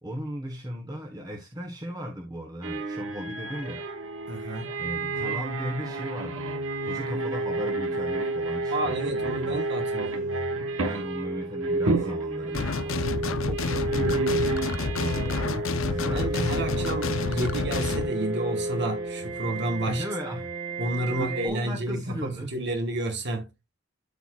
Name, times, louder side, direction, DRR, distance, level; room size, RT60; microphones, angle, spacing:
voice 1, 0.0-3.8 4.8-9.6 10.0-10.5 10.8-17.2 19.9-20.5 21.1-22.6, equal, 20° right, 1.2 m, -37 dB
sound 1, 2.6-21.5, right 2 dB, 75° right, 1.5 m, -30 dB
voice 2, 4.3-4.7 8.7-10.5 16.1-20.0 20.8-23.5, right 1 dB, 60° right, 1.4 m, -31 dB
sound 2, 12.5-18.1, left 3 dB, 75° left, 0.8 m, -29 dB
13.0 x 4.6 x 2.4 m
head